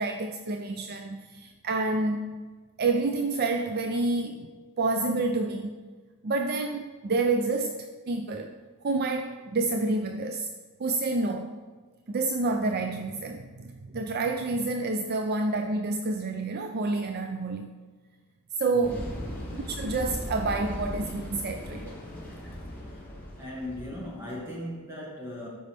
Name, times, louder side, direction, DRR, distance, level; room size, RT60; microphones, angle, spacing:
voice 1, 0.0-2.2 2.8-4.5 4.8-5.8 6.2-8.5 8.8-10.5 10.8-11.5 12.1-17.7 18.6-19.0 19.7-22.0, right 3 dB, 45° right, 5 dB, 0.4 m, -28 dB
voice 2, 18.7-19.3 22.8-23.0 23.4-25.5, left 1 dB, 10° right, -5 dB, 2.1 m, -38 dB
sound 1, 18.8-24.3, equal, 10° left, 2.9 m, -38 dB
13.0 x 5.4 x 3.4 m, 1.4 s
head